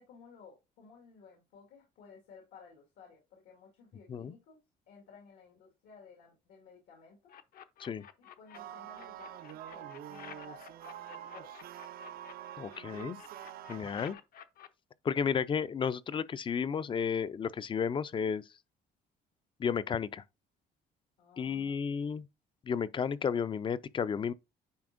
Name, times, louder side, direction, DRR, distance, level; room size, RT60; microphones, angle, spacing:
voice 1, 0.0-4.6 4.9-7.3 8.2-11.5 21.2-21.9, left 5 dB, 90° left, 1.9 m, -56 dB
sound 1, 7.3-8.6 8.9-12.3 12.7-14.7, left 10 dB, 60° left, 0.7 m, -51 dB
sound 2, 8.5-14.1, right 11 dB, 65° right, 0.6 m, -46 dB
voice 2, 12.6-13.2 13.7-14.1 15.0-18.4 19.6-20.2 21.4-22.3 22.7-24.3, left 7 dB, 30° left, 0.4 m, -32 dB
9.5 x 4.2 x 2.6 m
cardioid pair, 110°, 17 cm